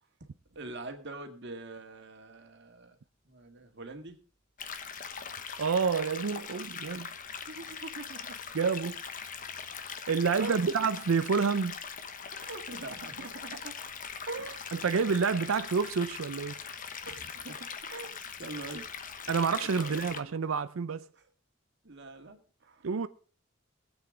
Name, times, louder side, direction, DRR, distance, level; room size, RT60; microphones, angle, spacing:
voice 1, 0.5-3.0 3.3-4.2 7.4-8.4 10.4-10.7 12.3-13.7 14.1-14.6 17.0-18.1 18.4-19.3 19.6-20.3 21.1-21.3 21.8-22.9, right 2 dB, 60° right, 1.8 m, -43 dB
sound 1, 4.6-20.2, left 6 dB, 40° left, 1.0 m, -41 dB
voice 2, 5.6-7.1 8.5-9.0 10.1-11.8 14.8-16.6 19.3-21.0 22.8-23.1, right 5 dB, 85° right, 0.5 m, -28 dB
22.0 x 8.2 x 3.8 m
head